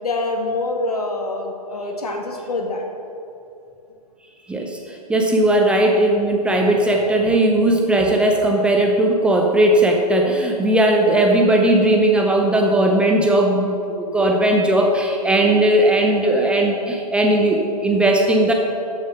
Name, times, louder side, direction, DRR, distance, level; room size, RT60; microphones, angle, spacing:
voice 1, 0.0-2.9, left 2 dB, 65° left, 2 dB, 1.9 m, -25 dB
voice 2, 4.5-18.5, right 1 dB, 5° right, 1 dB, 0.7 m, -17 dB
13.0 x 6.9 x 6.0 m, 2.7 s
figure-of-eight pair, 120°, 21 cm